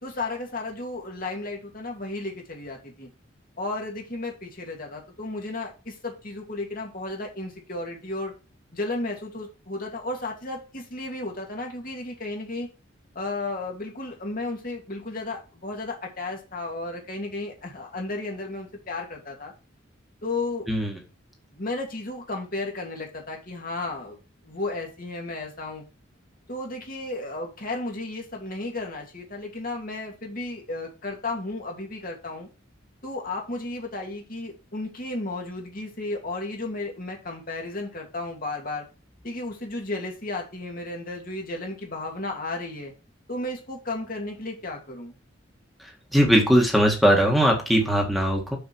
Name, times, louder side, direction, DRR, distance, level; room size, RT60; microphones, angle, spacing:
voice 1, 0.0-3.1 3.6-8.3 8.7-12.7 13.1-19.5 20.2-20.7 21.5-24.2 24.4-25.8 26.5-32.5 33.0-38.8 39.2-42.9 43.3-45.1, left 2 dB, 45° left, 1 dB, 2.5 m, -33 dB
voice 2, 20.7-21.0 46.1-48.6, equal, ahead, 1 dB, 1.8 m, -20 dB
6.6 x 6.5 x 4.6 m, 0.31 s
head